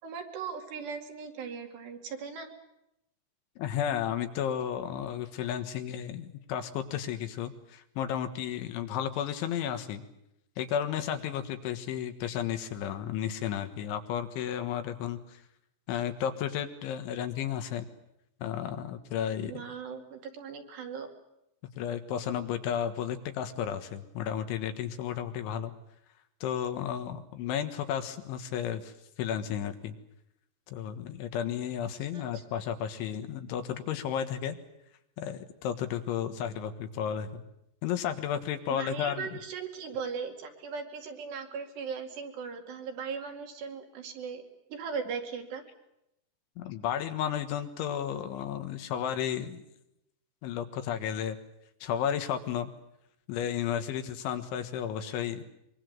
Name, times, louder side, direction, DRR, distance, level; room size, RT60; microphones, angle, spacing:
voice 1, 0.0-2.5 19.4-21.1 32.1-32.4 38.7-44.4 44.7-45.6, right 6 dB, 65° right, 4 dB, 4.3 m, -38 dB
voice 2, 3.6-10.0 10.6-15.4 15.9-17.9 18.4-19.5 21.8-25.7 26.4-28.9 29.2-30.0 30.7-34.6 35.2-37.5 37.8-39.3 46.6-49.7 50.4-51.4 51.8-52.7 53.3-55.5, left 9 dB, 75° left, 8 dB, 3.7 m, -33 dB
24.5 x 24.0 x 7.7 m, 0.84 s
omnidirectional pair, 5.7 m